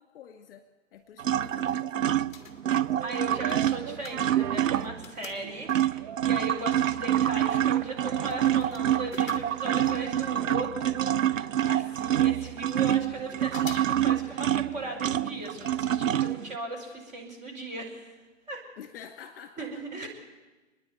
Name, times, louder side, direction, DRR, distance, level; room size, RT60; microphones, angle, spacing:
voice 1, 0.0-2.3 18.8-20.1, left 8 dB, 45° left, 6 dB, 2.2 m, -48 dB
sound 1, 1.0-1.9 2.2-6.1 6.7-6.8 7.0-10.6 10.9-11.0 11.2-11.3 11.8-11.9 12.2-13.1 13.4-14.0 14.3-14.4 15.4-15.7 16.0-16.1 16.6-16.7 17.1-17.2, left 6 dB, 15° left, 1.8 m, -49 dB
sound 2, 1.2-5.1 5.4-16.5, right 11 dB, 80° right, 0.6 m, -27 dB
sound 3, 2.7-15.5, right 8 dB, 35° right, 1.0 m, -44 dB
voice 2, 3.0-18.1 18.5-18.6 19.6-20.1, right 2 dB, 20° right, -1 dB, 5.1 m, -38 dB
28.0 x 10.5 x 9.4 m, 1.2 s
figure-of-eight pair, 125°, 39 cm